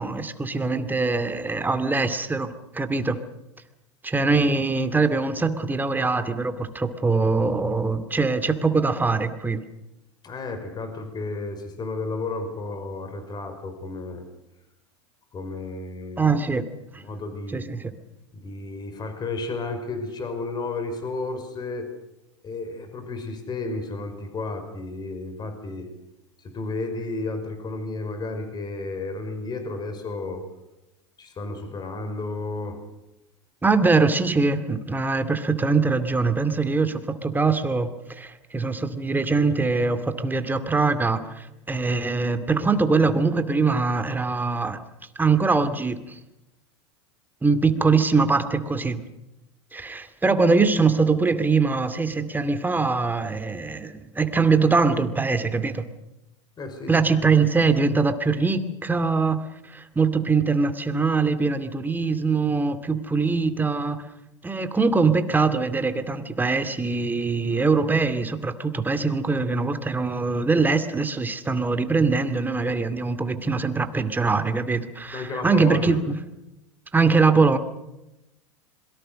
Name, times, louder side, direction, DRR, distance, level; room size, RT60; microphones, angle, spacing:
voice 1, 0.0-3.2 4.0-9.6 16.2-16.7 17.5-17.9 33.6-44.8 45.2-46.2 47.4-49.0 49.7-55.9 56.9-59.4 59.7-64.0 64.4-76.1 76.9-77.6, right 4 dB, 10° right, 10 dB, 2.5 m, -22 dB
voice 2, 10.2-14.2 15.3-16.3 16.9-17.7 18.3-21.9 22.4-25.9 26.4-30.4 31.2-32.8 56.6-57.1 75.1-76.0, left 3 dB, 30° left, 7 dB, 5.5 m, -32 dB
26.5 x 23.0 x 6.5 m, 0.94 s
hypercardioid pair, 95°, 15 cm